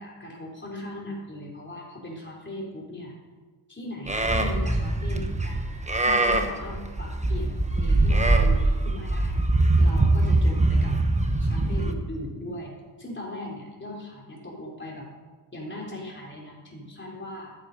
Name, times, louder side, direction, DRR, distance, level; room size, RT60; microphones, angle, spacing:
voice 1, 0.0-3.1 3.7-5.7 6.0-9.4 9.8-10.9 11.4-12.7 13.0-15.1 15.5-17.5, left 1 dB, 25° left, -3 dB, 4.0 m, -38 dB
Livestock farm animals working animals, 4.1-11.9, right 2 dB, 15° right, 1.1 m, -22 dB
12.5 x 8.9 x 5.5 m, 1.3 s
wide cardioid pair, 95°, 45 cm